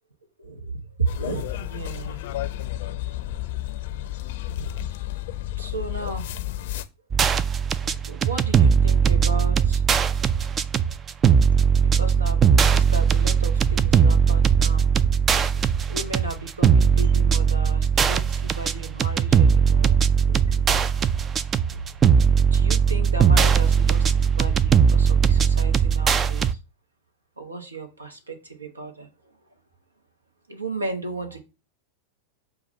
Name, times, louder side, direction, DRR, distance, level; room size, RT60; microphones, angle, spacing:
voice 1, 0.4-2.7 4.5-4.9 5.6-6.3 7.8-9.8 11.8-15.0 15.5-20.9 21.7-21.8 22.2-26.6 27.4-29.1 30.5-31.4, right 3 dB, 75° right, 1.1 m, -35 dB
sound 1, 1.1-6.9, left 14 dB, 55° left, 0.5 m, -32 dB
sound 2, 7.1-26.5, right 7 dB, 25° right, 0.4 m, -19 dB
6.9 x 2.5 x 5.4 m
figure-of-eight pair, 90°, 0 cm